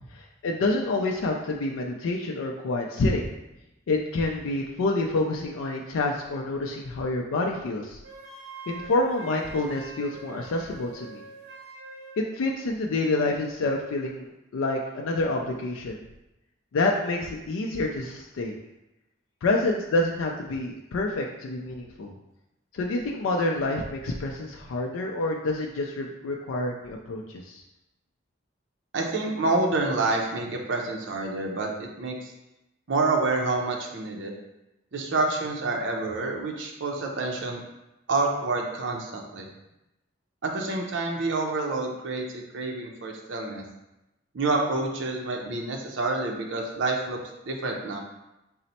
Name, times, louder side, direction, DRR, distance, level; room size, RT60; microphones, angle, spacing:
voice 1, 0.1-3.3 3.9-8.0 8.7-11.2 12.2-16.0 16.7-18.5 19.4-22.1 22.7-27.6, left 2 dB, 85° left, 0 dB, 0.4 m, -28 dB
Wind instrument woodwind instrument, 8.0-12.2, right 3 dB, 45° right, 0.9 m, -44 dB
voice 2, 28.9-32.1 32.9-34.3 34.9-37.6 38.1-39.5 40.4-43.6 44.3-47.2 47.5-48.0, right 3 dB, 65° right, 0 dB, 0.5 m, -28 dB
4.1 x 2.0 x 4.1 m, 0.92 s
head